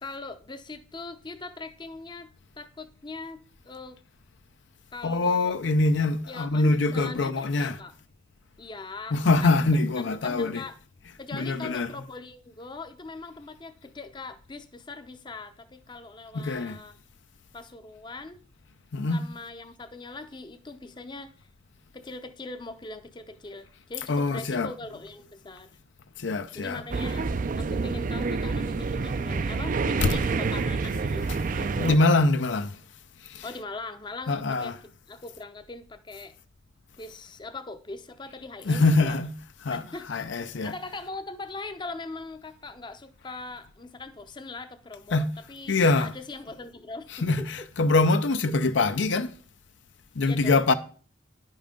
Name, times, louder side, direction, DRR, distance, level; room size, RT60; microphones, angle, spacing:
voice 1, 0.0-2.3 2.6-3.4 3.6-4.0 4.9-5.5 6.3-7.9 8.6-10.7 11.2-17.0 17.5-18.4 19.1-21.5 21.9-25.8 26.5-27.3 27.6-32.0 33.4-34.7 35.1-36.3 37.0-39.2 39.7-40.2 40.6-47.5 50.2-50.7, left 3 dB, 25° left, 0.6 m, -41 dB
voice 2, 5.0-7.8 9.1-10.7 11.0-12.0 16.3-16.8 18.9-19.3 24.0-24.8 26.2-26.8 30.0-30.2 31.2-32.8 33.2-33.6 34.3-34.8 38.6-40.8 45.1-45.3 45.7-46.2 47.1-49.4 50.1-50.7, left 3 dB, 75° left, 0.6 m, -24 dB
sound 1, 26.9-32.0, right 4 dB, 45° right, 0.4 m, -28 dB
10.5 x 5.5 x 5.1 m
head